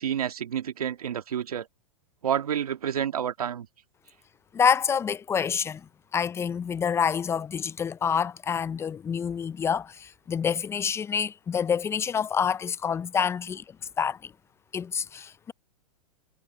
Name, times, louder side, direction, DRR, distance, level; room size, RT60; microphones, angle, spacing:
voice 1, 0.0-1.7 2.2-3.7, right 9 dB, 85° right, 1.8 m, -29 dB
voice 2, 4.5-5.8 6.1-13.6 14.0-14.3 14.7-15.5, left 7 dB, 15° left, 0.4 m, -27 dB
hypercardioid pair, 115°, 18 cm